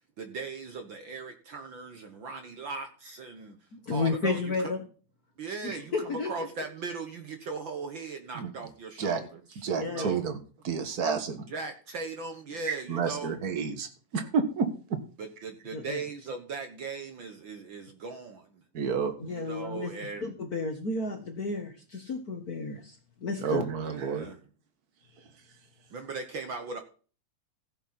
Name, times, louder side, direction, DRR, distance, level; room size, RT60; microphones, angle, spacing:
voice 1, 0.2-3.6 3.9-4.7 5.4-10.2 11.5-13.3 15.2-18.6 19.3-20.3 23.8-24.4 25.9-26.8, right 4 dB, 55° right, 6 dB, 1.5 m, -38 dB
voice 2, 3.7-4.8 5.6-6.3 9.7-10.1 15.7-16.0 19.2-19.9 20.2-23.0 23.2-23.7, left 4 dB, 50° left, 5 dB, 1.1 m, -32 dB
voice 3, 9.6-10.4 10.6-11.5 12.7-15.0 18.7-19.3 23.4-24.3, right 5 dB, 40° right, 8 dB, 1.6 m, -30 dB
15.5 x 7.9 x 4.2 m, 0.38 s
omnidirectional pair, 3.3 m